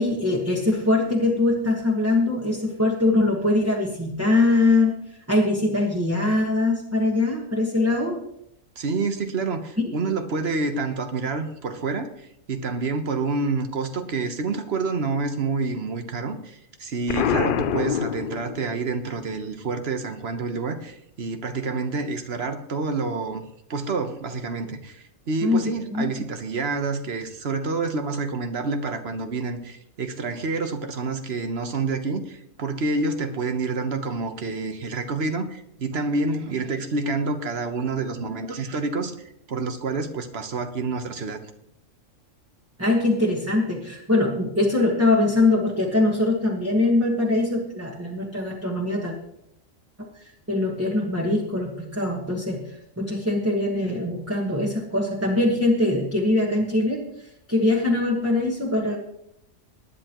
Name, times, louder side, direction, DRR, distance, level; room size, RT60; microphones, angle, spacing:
voice 1, 0.0-8.3 9.8-10.0 25.4-26.1 42.8-49.2 50.0-59.0, left 2 dB, 10° right, -3 dB, 1.4 m, -22 dB
voice 2, 8.8-23.4 23.7-41.4, right 3 dB, 55° right, 8 dB, 1.3 m, -28 dB
Explosion, 17.1-18.9, left 9 dB, 60° left, 0.5 m, -25 dB
20.0 x 10.0 x 3.0 m, 0.78 s
omnidirectional pair, 1.3 m